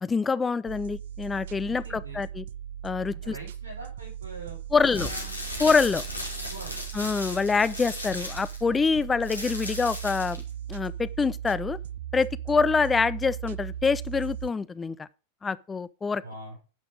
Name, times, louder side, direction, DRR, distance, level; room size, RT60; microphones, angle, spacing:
voice 1, 0.0-2.5 2.8-3.4 4.7-5.1 5.6-6.0 6.9-10.4 10.7-11.8 12.1-15.1 15.4-16.2, left 5 dB, 15° left, 0.4 m, -25 dB
sound 1, 0.7-14.5, right 10 dB, 60° right, 0.4 m, -38 dB
voice 2, 1.7-2.2 3.1-5.3 6.5-6.8 16.2-16.6, right 2 dB, 90° right, 4.1 m, -43 dB
sound 2, 4.9-10.5, left 1 dB, 85° left, 2.3 m, -36 dB
9.7 x 6.0 x 5.0 m
figure-of-eight pair, 90°, 0 cm